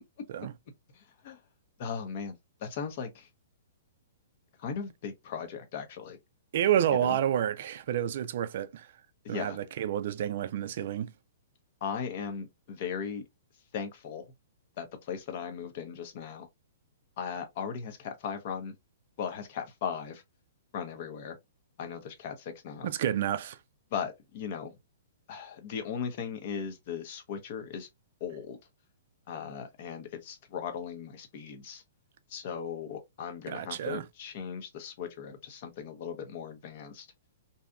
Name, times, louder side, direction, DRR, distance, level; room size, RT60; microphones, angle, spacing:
voice 1, 1.8-2.3 2.6-3.3 4.6-6.2 7.0-7.2 9.2-9.6 11.8-13.2 13.7-14.2 14.8-16.5 17.2-18.7 19.2-20.2 20.7-21.4 21.8-22.9 23.9-24.7 25.3-27.9 28.2-28.6 29.3-31.8 32.3-37.1, left 7 dB, 50° left, 0.6 m, -37 dB
voice 2, 6.5-8.9 9.3-11.1 22.8-23.6 33.5-34.1, right 10 dB, 60° right, 0.3 m, -29 dB
2.7 x 2.3 x 2.2 m
hypercardioid pair, 140°, 0 cm